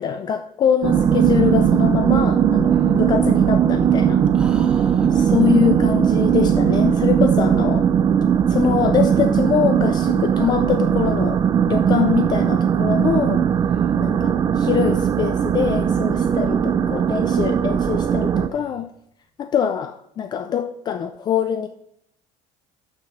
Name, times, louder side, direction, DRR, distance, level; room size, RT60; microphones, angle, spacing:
voice 1, 0.0-4.2 5.1-7.9 8.5-11.4 11.7-13.4 14.0-18.9 19.4-21.7, left 9 dB, 35° left, 8 dB, 0.4 m, -23 dB
sound 1, 0.8-18.5, right 8 dB, 30° right, 0.4 m, -18 dB
voice 2, 2.7-3.0 4.3-5.7 13.7-14.0 18.5-18.8, right 1 dB, 5° right, 3 dB, 1.3 m, -39 dB
12.0 x 6.4 x 3.2 m, 0.75 s
cardioid pair, 145°, 13 cm